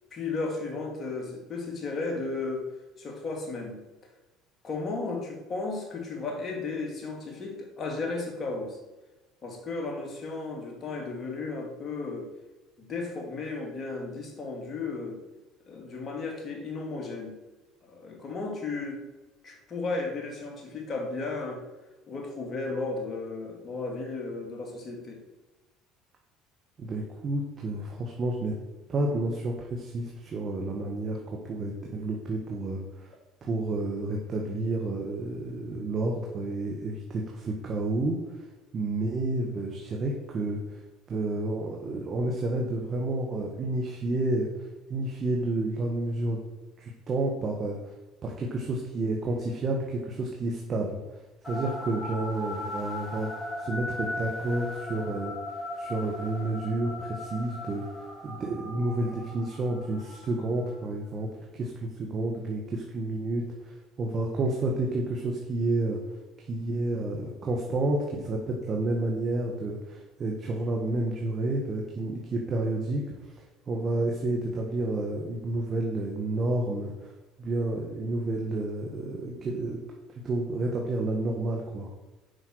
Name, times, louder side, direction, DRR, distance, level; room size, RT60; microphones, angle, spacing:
voice 1, 0.1-2.7 3.0-3.8 4.6-8.8 9.4-12.3 12.8-15.2 15.7-17.4 17.8-19.0 19.4-21.6 22.1-25.2, left 3 dB, 40° left, 1 dB, 2.8 m, -34 dB
voice 2, 26.8-28.6 28.9-33.1 33.4-38.5 38.7-40.8 41.1-46.4 46.8-47.9 48.2-51.0 51.5-55.3 55.8-66.0 66.5-77.1 77.4-79.8 80.1-81.9, right 2 dB, 40° right, 0 dB, 1.6 m, -30 dB
sound 1, 51.4-60.9, left 1 dB, 20° left, 2.7 m, -38 dB
8.0 x 5.7 x 6.4 m, 1.1 s
supercardioid pair, 85°, 0 cm